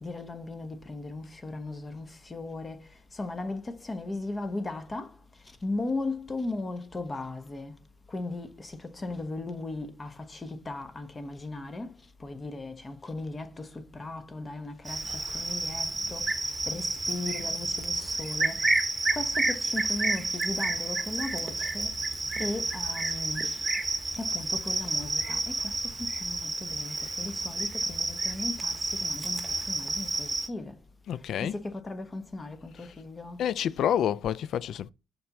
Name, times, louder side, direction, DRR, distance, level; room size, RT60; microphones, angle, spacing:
voice 1, 0.0-2.1 2.3-2.8 3.2-5.1 5.6-7.7 8.1-8.7 9.0-11.9 12.2-13.7 14.0-15.0 15.3-16.2 16.7-18.6 19.2-21.9 22.4-23.4 24.2-25.6 26.0-28.7 29.0-29.4 29.7-30.7 31.4-33.4, left 2 dB, 30° left, 1.0 m, -37 dB
Cricket, 14.9-30.5, right 2 dB, 20° right, 1.1 m, -30 dB
voice 2, 31.1-31.6 33.4-34.9, left 9 dB, 70° left, 0.3 m, -28 dB
5.5 x 4.3 x 5.9 m
cardioid pair, 90°, 0 cm